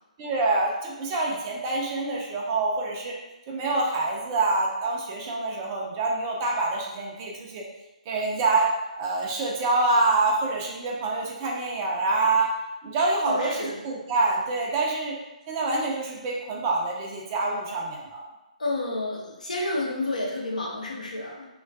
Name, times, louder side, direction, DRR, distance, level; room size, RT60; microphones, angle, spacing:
voice 1, 0.2-3.1 3.5-7.6 8.1-8.7 9.0-12.5 12.8-15.1 15.5-18.2, right 3 dB, 30° right, -2 dB, 0.4 m, -26 dB
voice 2, 13.2-13.8 18.6-21.5, left 2 dB, 70° left, -2 dB, 0.6 m, -30 dB
2.2 x 2.2 x 2.5 m, 0.98 s
figure-of-eight pair, 135°, 4 cm